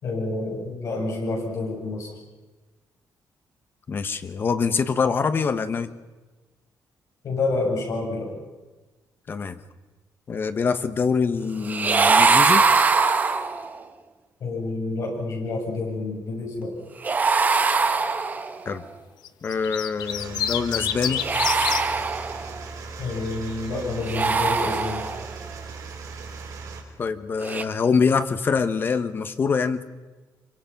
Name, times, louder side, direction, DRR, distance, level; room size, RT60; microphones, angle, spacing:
voice 1, 0.0-2.1 7.2-8.3 14.4-16.7 23.0-25.0, left 3 dB, 50° left, -1 dB, 7.6 m, -28 dB
voice 2, 3.9-5.9 9.3-9.6 10.3-12.7 18.6-18.8 19.4-21.2 27.0-29.8, left 5 dB, 30° left, 11 dB, 1.1 m, -24 dB
sound 1, 11.6-13.8 17.0-18.7 21.1-22.6 24.0-25.4 27.4-27.6, right 4 dB, 25° right, 1.1 m, -22 dB
sound 2, 19.2-21.8 23.1-23.5, left 10 dB, 85° left, 1.2 m, -28 dB
sound 3, 19.9-26.8, right 4 dB, 55° right, 3.8 m, -38 dB
25.5 x 24.0 x 6.0 m, 1.2 s
cardioid pair, 175°, 7 cm